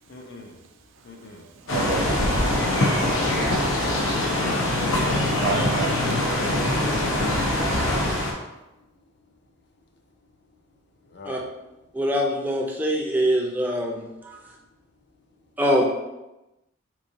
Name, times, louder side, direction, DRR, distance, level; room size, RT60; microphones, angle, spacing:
voice 1, 0.1-0.6 1.0-1.5 3.7-4.9 11.1-11.5, left 2 dB, 55° left, 3 dB, 0.5 m, -41 dB
voice 2, 1.6-2.2 3.6-3.8 4.7-7.3, right 4 dB, 75° right, 4 dB, 0.4 m, -33 dB
sound 1, 1.7-8.3, left 1 dB, 90° left, 0.8 m, -23 dB
voice 3, 11.9-14.3 15.6-15.9, equal, 10° right, 0 dB, 0.4 m, -23 dB
3.6 x 3.1 x 2.6 m, 0.99 s
head